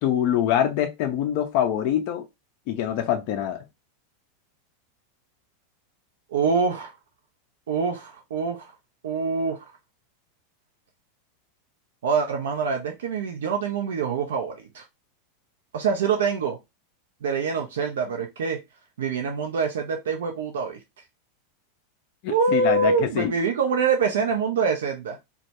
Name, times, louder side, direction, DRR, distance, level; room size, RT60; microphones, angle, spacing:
voice 1, 0.0-2.2 2.7-3.6 22.2-23.3, left 10 dB, 55° left, 0.4 m, -24 dB
voice 2, 6.3-6.9 7.7-8.7 9.0-9.7 12.0-14.8 15.7-16.6 17.2-18.6 19.0-20.8 22.3-25.2, right 5 dB, 75° right, 0.4 m, -25 dB
2.1 x 2.1 x 2.8 m
hypercardioid pair, 95°, 0 cm